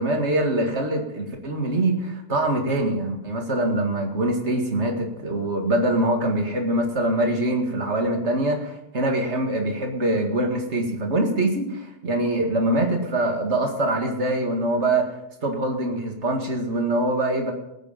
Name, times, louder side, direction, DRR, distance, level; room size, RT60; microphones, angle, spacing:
voice 1, 0.0-15.1 15.4-17.5, right 1 dB, 75° right, 2 dB, 2.3 m, -24 dB
19.5 x 6.7 x 5.6 m, 0.87 s
omnidirectional pair, 1.2 m